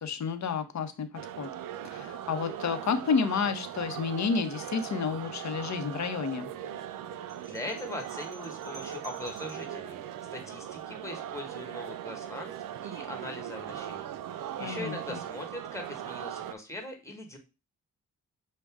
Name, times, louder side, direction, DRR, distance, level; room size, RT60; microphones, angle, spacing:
voice 1, 0.0-1.1 1.4-1.5 1.9-6.5 14.6-15.2, left 5 dB, 55° left, 9 dB, 0.8 m, -30 dB
sound 1, 1.1-16.5, right 10 dB, 80° right, 0.5 m, -39 dB
sound 2, 7.3-9.8, right 1 dB, 20° right, 2.6 m, -51 dB
voice 2, 7.4-12.6 12.8-17.4, left 1 dB, 10° left, 2 dB, 1.4 m, -41 dB
6.4 x 2.2 x 3.5 m, 0.28 s
cardioid pair, 85°, 33 cm